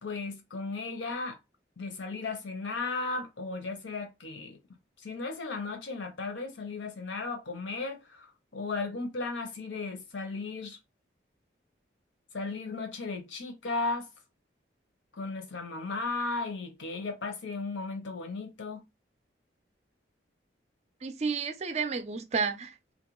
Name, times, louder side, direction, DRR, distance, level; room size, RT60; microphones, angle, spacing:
voice 1, 0.0-1.4 1.8-4.6 5.0-10.8 12.3-14.1 15.1-18.8, left 3 dB, 85° left, 0.8 m, -35 dB
voice 2, 21.0-22.9, right 5 dB, 35° right, 0.4 m, -31 dB
2.5 x 2.1 x 2.9 m
head